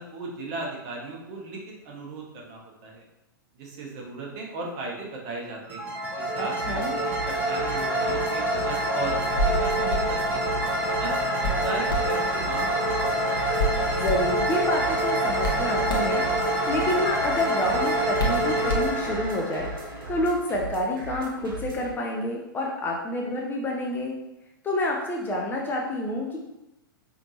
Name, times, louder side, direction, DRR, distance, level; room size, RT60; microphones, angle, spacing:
voice 1, 0.0-3.0 3.5-5.9 6.2-6.8 7.2-10.5 11.0-13.5, right 3 dB, 40° right, -1 dB, 1.2 m, -36 dB
sound 1, 5.7-20.5, right 1 dB, 15° right, 1.3 m, -26 dB
voice 2, 6.4-7.0 13.9-16.2 16.7-19.7 20.1-24.1 24.6-26.4, left 1 dB, 15° left, -1 dB, 0.6 m, -28 dB
sound 2, 6.6-21.9, right 1 dB, 70° right, 0.9 m, -39 dB
Hands, 9.3-19.4, equal, 80° left, 0.9 m, -33 dB
5.0 x 2.9 x 2.7 m, 0.92 s
figure-of-eight pair, 105°, 12 cm